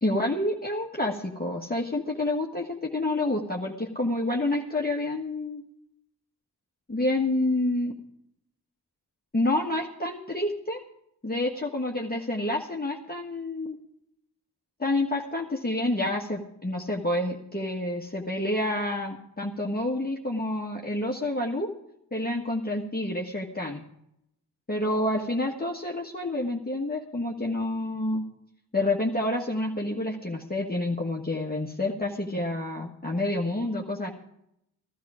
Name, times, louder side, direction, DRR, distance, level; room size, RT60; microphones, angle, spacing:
voice 1, 0.0-5.6 6.9-7.9 9.3-10.8 11.2-13.8 14.8-21.7 22.1-23.8 24.7-28.2 28.7-34.1, left 1 dB, 25° left, -1 dB, 1.5 m, -28 dB
14.5 x 13.5 x 5.0 m, 0.78 s
wide cardioid pair, 85°, 39 cm